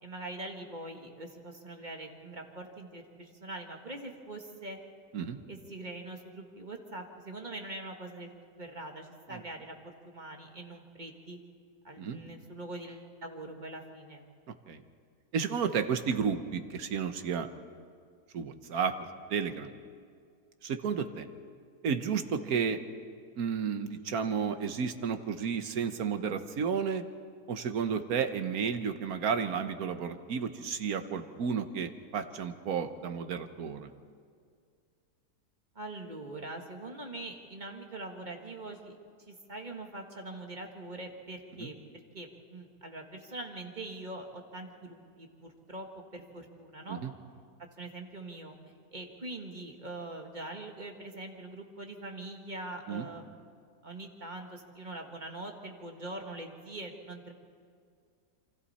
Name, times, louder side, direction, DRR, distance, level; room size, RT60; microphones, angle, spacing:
voice 1, 0.0-4.8 5.5-8.3 8.6-11.4 11.8-14.2 35.8-39.0 39.3-47.0 47.8-48.6 48.9-53.3 53.8-57.3, right 2 dB, 30° right, 3 dB, 1.7 m, -43 dB
voice 2, 15.3-17.5 18.3-18.9 19.3-19.7 20.6-21.3 21.8-22.8 23.4-27.0 27.5-33.9 41.6-41.7 46.9-47.1 52.9-53.1, right 6 dB, 65° right, 8 dB, 1.5 m, -32 dB
27.5 x 24.5 x 4.3 m, 2.2 s
omnidirectional pair, 1.8 m